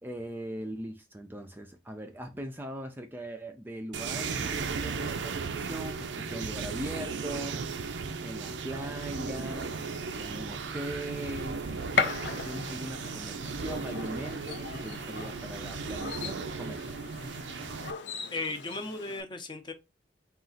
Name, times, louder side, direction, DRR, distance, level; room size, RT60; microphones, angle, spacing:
voice 1, 0.0-7.9 8.2-11.6 12.4-17.0, right 1 dB, 10° right, 0.4 m, -40 dB
sound 1, 3.9-17.9, right 5 dB, 90° right, 0.5 m, -36 dB
Gunshot gunfire, 9.2-19.2, left 5 dB, 90° left, 0.6 m, -38 dB
sound 2, 13.4-13.6 14.0-14.1 14.5-15.0 16.1-16.4 17.5-17.6 17.8-18.8, left 7 dB, 70° left, 1.2 m, -42 dB
voice 2, 18.3-19.7, left 3 dB, 25° left, 0.7 m, -36 dB
4.0 x 2.4 x 3.8 m
head